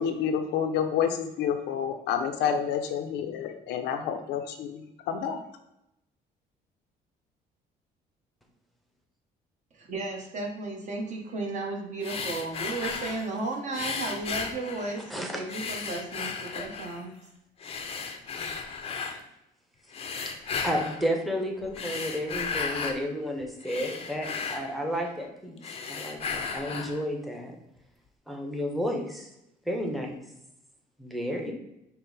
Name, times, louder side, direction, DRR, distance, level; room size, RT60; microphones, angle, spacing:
voice 1, 0.0-5.4, left 8 dB, 80° left, 6 dB, 0.5 m, -29 dB
voice 2, 9.7-17.2, right 3 dB, 45° right, 0 dB, 1.0 m, -34 dB
sound 1, 12.0-13.3 13.7-15.1 15.5-17.0 17.6-19.2 19.9-21.1 21.6-23.0 23.4-25.3 25.6-27.0, left 5 dB, 35° left, 0.5 m, -35 dB
voice 3, 15.1-15.4 20.6-25.6 25.9-27.6 28.3-29.3 29.7-30.2 31.0-31.5, equal, ahead, 2 dB, 0.7 m, -32 dB
5.6 x 2.0 x 3.9 m, 0.86 s
cardioid pair, 110°, 17 cm